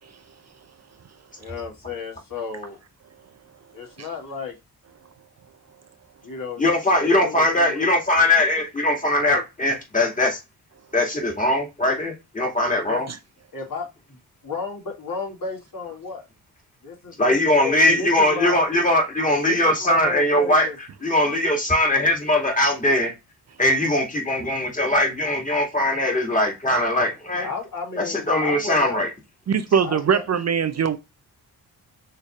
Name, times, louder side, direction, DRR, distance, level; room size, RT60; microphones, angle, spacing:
voice 1, 1.4-2.8 3.7-4.5 6.2-6.6 7.0-7.9 12.9-13.0 13.5-13.9 14.4-16.2 16.8-17.4 17.6-18.6 19.5-20.8 27.4-29.1 29.8-30.2, left 4 dB, 55° left, 2.3 m, -33 dB
voice 2, 6.6-10.4 10.9-13.1 17.2-20.7 21.0-23.1 23.6-27.5 28.0-29.1, left 1 dB, 20° left, 2.2 m, -21 dB
voice 3, 29.5-31.0, right 7 dB, 40° right, 0.5 m, -21 dB
6.4 x 3.3 x 2.4 m
cardioid pair, 60°, 40 cm